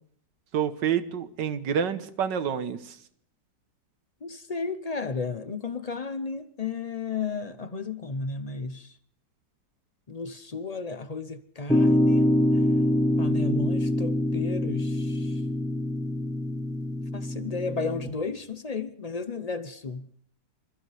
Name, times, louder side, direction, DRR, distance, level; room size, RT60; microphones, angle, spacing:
voice 1, 0.5-3.0, right 8 dB, 85° right, 1.8 m, -28 dB
voice 2, 4.2-9.0 10.1-12.7 13.2-15.4 17.1-20.1, left 4 dB, 45° left, 0.5 m, -34 dB
sound 1, 11.7-18.1, left 1 dB, 5° left, 0.6 m, -25 dB
27.0 x 15.0 x 3.4 m
omnidirectional pair, 1.9 m